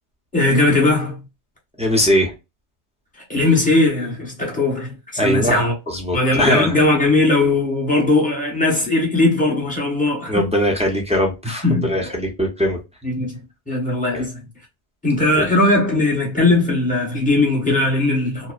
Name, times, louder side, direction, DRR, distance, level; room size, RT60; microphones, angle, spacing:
voice 1, 0.3-1.2 3.3-4.9 5.2-5.7 6.1-10.4 11.6-12.1 13.0-13.4 13.7-14.3 15.0-18.5, left 2 dB, 10° left, 1.0 m, -18 dB
voice 2, 1.8-2.3 5.2-5.6 5.9-6.7 10.3-12.8 14.1-14.3 15.3-15.4, equal, 10° right, 0.4 m, -20 dB
2.7 x 2.0 x 2.2 m
omnidirectional pair, 1.1 m